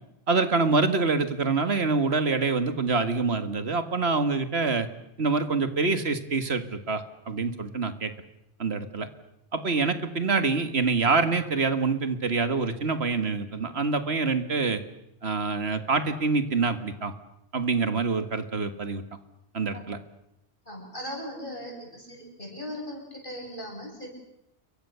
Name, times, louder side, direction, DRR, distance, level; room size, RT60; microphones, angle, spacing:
voice 1, 0.3-4.9 5.2-8.1 8.6-9.1 9.5-14.8 15.2-17.1 17.5-19.0 19.5-20.0, right 4 dB, 75° right, 10 dB, 2.0 m, -26 dB
voice 2, 20.6-24.1, equal, 55° left, 0 dB, 8.2 m, -38 dB
29.0 x 23.5 x 6.9 m, 0.82 s
omnidirectional pair, 1.1 m